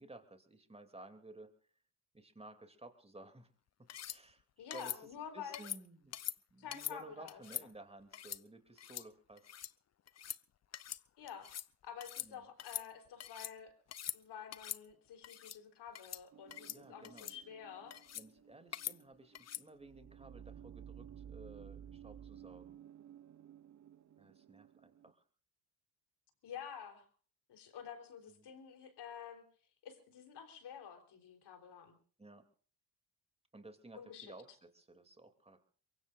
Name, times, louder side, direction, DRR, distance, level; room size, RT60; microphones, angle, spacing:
voice 1, 0.0-1.5 2.1-3.5 3.8-6.2 6.5-9.5 12.2-12.5 16.7-17.3 18.1-22.8 24.2-25.2 28.4-28.5 32.2-32.4 33.5-35.6, right 2 dB, 15° right, 7 dB, 2.9 m, -55 dB
sound 1, 3.9-4.2 4.7-5.0 5.5-5.8 6.1-6.4 6.7-7.0 7.3-7.6 8.1-8.4 8.8-9.1 9.4-9.7 10.1-10.4 10.7-11.0 11.3-11.7 12.0-12.3 12.6-13.5 13.9-14.2 14.5-14.8 15.2-15.6 15.9-16.2 16.5-16.8 17.0-17.4 17.9-18.3 18.7-19.0 19.3-19.6, left 10 dB, 35° left, 0.7 m, -43 dB
voice 2, 4.6-5.7 6.6-7.4 11.2-11.5 11.8-13.7 14.1-17.9 26.4-27.1 27.5-29.4 29.8-32.0 33.9-34.3, left 8 dB, 55° left, 5 dB, 3.9 m, -49 dB
sound 2, 16.3-25.1, right 9 dB, 40° right, 1.1 m, -55 dB
23.0 x 23.0 x 2.6 m, 0.43 s
hypercardioid pair, 55°, 47 cm